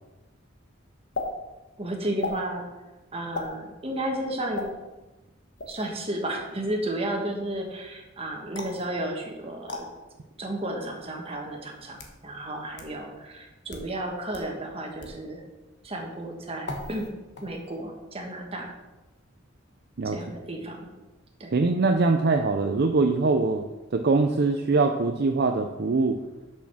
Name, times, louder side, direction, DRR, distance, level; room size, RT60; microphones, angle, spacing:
sound 1, 1.1-1.3 2.2-2.4 3.3-3.5 4.5-4.7 5.6-5.8 8.5-8.8 9.7-9.8 10.8-10.9 11.7-12.2 12.8-12.9 13.6-13.9 14.3-14.4 15.0-15.2 16.6-17.1 17.4-17.8, left 3 dB, 60° left, 1.2 m, -35 dB
voice 1, 1.8-2.7 3.1-4.7 5.7-9.9 10.4-15.4 15.8-17.1 17.4-18.7 20.0-20.9 21.4-21.6, right 1 dB, 30° right, 1 dB, 1.3 m, -33 dB
voice 2, 21.5-23.6 23.9-26.2, right 3 dB, 55° right, 5 dB, 0.5 m, -23 dB
6.4 x 5.9 x 6.0 m, 1.1 s
head